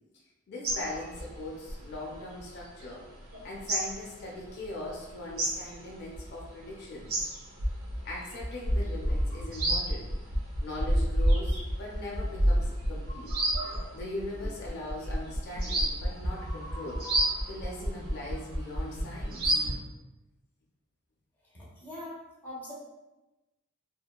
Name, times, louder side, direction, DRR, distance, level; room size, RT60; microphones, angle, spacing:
voice 1, 0.5-3.0 3.4-7.3 8.0-10.1 10.6-13.3 13.9-17.0 17.5-19.6, left 1 dB, 50° left, -3 dB, 0.4 m, -40 dB
sound 1, 0.6-2.9 3.3-6.7 6.9-19.8, equal, 80° right, 0.6 m, -30 dB
voice 2, 21.5-22.7, left 1 dB, 10° left, -7 dB, 0.7 m, -43 dB
2.7 x 2.2 x 2.2 m, 1.0 s
head